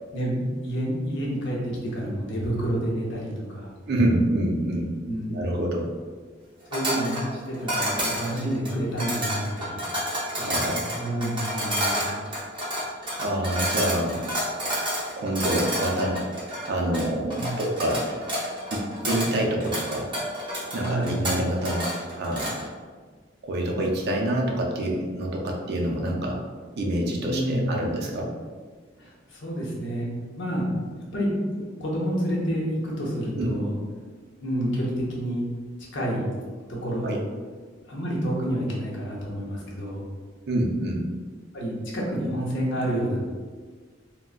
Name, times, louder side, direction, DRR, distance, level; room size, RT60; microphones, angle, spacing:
voice 1, 0.1-3.7 5.1-5.4 6.7-9.8 10.3-10.7 11.0-12.3 17.3-17.6 20.7-21.2 27.2-27.7 29.0-30.1 30.3-30.6 31.1-33.7 34.4-35.4 35.9-36.3 36.7-37.2 37.9-40.0 41.5-43.2, equal, 65° left, -4 dB, 0.8 m, -29 dB
voice 2, 3.9-4.9 5.3-5.9 10.3-11.0 13.2-14.3 15.2-16.3 16.7-18.1 18.7-20.1 20.7-22.6 23.4-26.4 26.8-28.3 33.4-33.8 37.0-37.2 40.5-41.1, right 1 dB, 55° right, 0 dB, 0.5 m, -26 dB
sound 1, 6.7-22.7, equal, 25° right, 0.7 m, -30 dB
3.7 x 2.1 x 2.4 m, 1.5 s
head